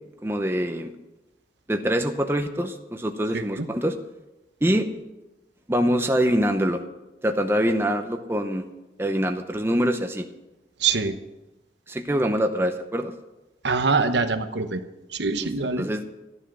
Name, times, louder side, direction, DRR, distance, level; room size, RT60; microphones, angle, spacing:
voice 1, 0.2-0.9 1.7-4.0 4.6-4.9 5.7-6.8 7.2-8.7 9.0-10.3 11.9-13.1 15.4-15.5 15.8-16.0, equal, 15° right, 5 dB, 0.8 m, -24 dB
voice 2, 10.8-11.2 13.6-14.8 15.1-15.9, right 4 dB, 80° right, 8 dB, 1.0 m, -24 dB
14.0 x 10.0 x 6.2 m, 1.0 s
head